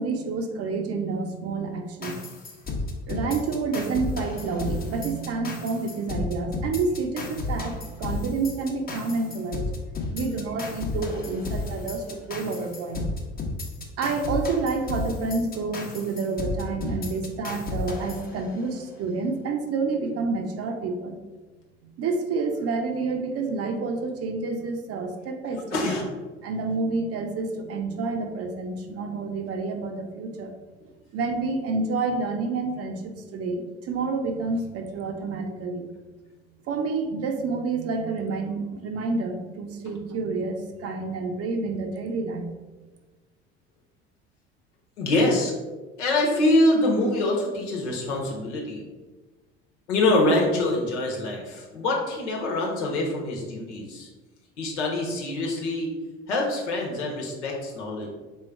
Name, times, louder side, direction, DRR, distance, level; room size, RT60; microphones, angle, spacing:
voice 1, 0.0-2.2 3.1-9.7 10.1-13.0 13.4-13.5 14.0-21.2 22.0-25.8 26.4-30.6 31.1-35.9 36.7-42.4 42.7-42.8, right 3 dB, 45° right, 5 dB, 0.7 m, -29 dB
sound 1, 2.0-18.9, left 3 dB, 25° left, 0.9 m, -33 dB
voice 2, 25.7-26.2 45.0-45.5 46.0-48.8 49.9-54.1 54.6-55.9 56.3-58.1, left 1 dB, 80° left, -1 dB, 1.2 m, -25 dB
3.7 x 3.2 x 4.5 m, 1.2 s
hypercardioid pair, 65°, 34 cm